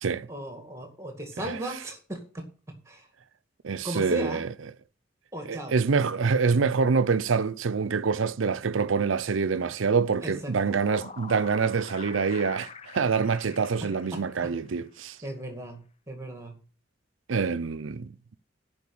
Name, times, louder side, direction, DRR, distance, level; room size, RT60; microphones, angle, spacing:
voice 1, 0.3-2.4 2.9-3.1 3.8-4.4 5.3-5.7 10.2-10.5 14.1-14.2 15.2-15.8 16.1-16.6, right 1 dB, 15° right, 2.1 m, -36 dB
voice 2, 3.6-4.5 5.5-15.2 17.3-18.4, right 5 dB, 85° right, 0.6 m, -26 dB
sound 1, 10.4-14.8, left 5 dB, 30° left, 0.5 m, -45 dB
11.0 x 5.2 x 8.4 m
head